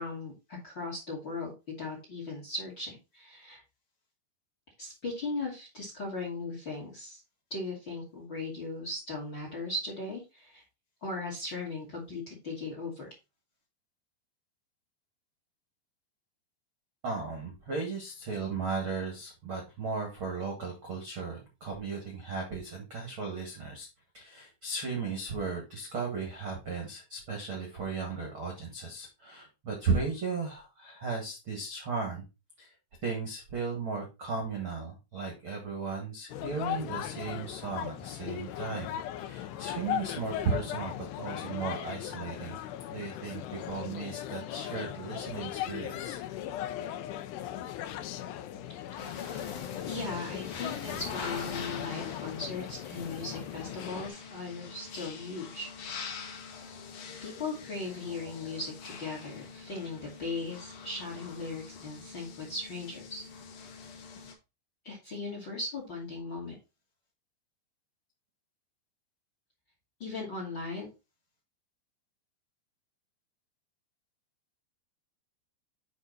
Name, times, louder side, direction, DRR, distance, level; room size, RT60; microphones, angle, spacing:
voice 1, 0.0-3.6 4.8-7.2 7.5-10.6 11.0-13.1 49.8-56.0 57.2-63.2 64.8-66.5 70.0-70.9, left 3 dB, 35° left, 0 dB, 1.9 m, -38 dB
voice 2, 17.0-23.9 24.1-32.2 32.6-32.7 33.0-42.6 42.9-46.2, right 4 dB, 55° right, 1 dB, 1.4 m, -36 dB
sound 1, 36.3-54.1, left 11 dB, 80° left, 2.4 m, -38 dB
sound 2, 49.0-64.3, left 5 dB, 60° left, 2.2 m, -44 dB
8.1 x 5.1 x 4.0 m, 0.26 s
omnidirectional pair, 5.5 m